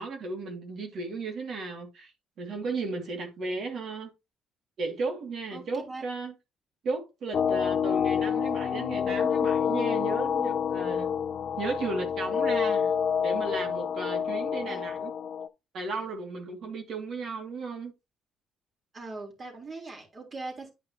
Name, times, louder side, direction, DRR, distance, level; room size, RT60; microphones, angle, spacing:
voice 1, 0.0-2.1 2.4-4.1 4.8-6.3 6.8-11.1 11.6-12.9 13.2-15.1 15.7-17.9, right 3 dB, 60° right, 2.4 m, -35 dB
voice 2, 5.5-6.0 14.5-14.8 18.9-20.7, right 3 dB, 35° right, 3.6 m, -40 dB
sound 1, 7.3-15.5, left 7 dB, 55° left, 0.6 m, -28 dB
10.0 x 5.1 x 3.0 m
cardioid pair, 90°, 0 cm